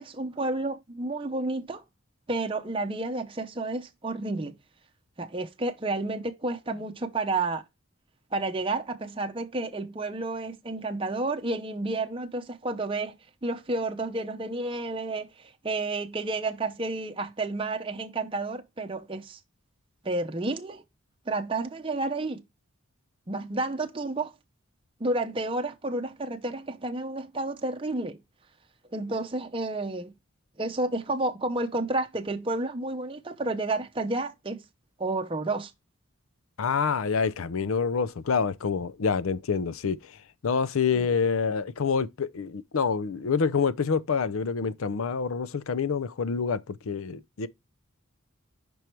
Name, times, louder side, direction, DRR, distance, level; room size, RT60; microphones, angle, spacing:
voice 1, 0.0-1.8 2.3-4.6 5.2-7.6 8.3-13.1 13.4-19.4 20.0-20.8 21.3-22.4 23.3-24.3 25.0-28.2 28.9-30.1 30.6-34.6 35.0-35.7, right 2 dB, 25° right, 0.7 m, -31 dB
voice 2, 36.6-40.0 40.4-47.5, left 5 dB, 75° left, 0.5 m, -27 dB
5.3 x 4.7 x 4.4 m
head